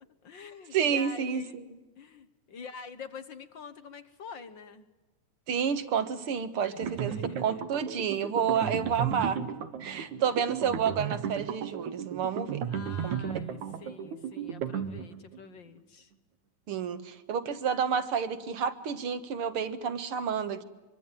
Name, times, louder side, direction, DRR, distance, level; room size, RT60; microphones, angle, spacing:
voice 1, 0.2-1.6 2.0-4.9 6.7-7.6 8.5-8.7 10.2-10.3 12.7-16.1, left 5 dB, 50° left, 12 dB, 1.6 m, -46 dB
voice 2, 0.7-1.6 5.5-9.5 9.8-12.6 13.0-13.4 16.7-20.6, right 7 dB, 55° right, 12 dB, 2.2 m, -30 dB
sound 1, 6.8-15.4, right 8 dB, 85° right, 3.0 m, -34 dB
24.5 x 24.5 x 9.1 m, 1.1 s
omnidirectional pair, 3.3 m